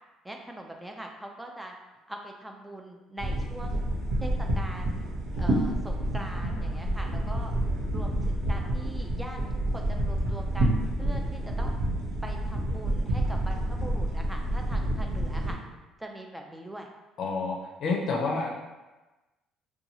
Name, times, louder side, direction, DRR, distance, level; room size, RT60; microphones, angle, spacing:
voice 1, 0.2-1.7 2.1-3.8 4.2-5.1 5.4-7.5 7.9-9.4 9.7-11.8 12.2-15.6 16.0-16.9, right 1 dB, 10° right, 2 dB, 0.3 m, -42 dB
sound 1, 3.2-15.5, right 1 dB, 80° right, 0.7 m, -29 dB
voice 2, 17.2-18.5, left 3 dB, 60° left, 0 dB, 0.5 m, -29 dB
2.7 x 2.3 x 2.7 m, 1.1 s
supercardioid pair, 75°, 0 cm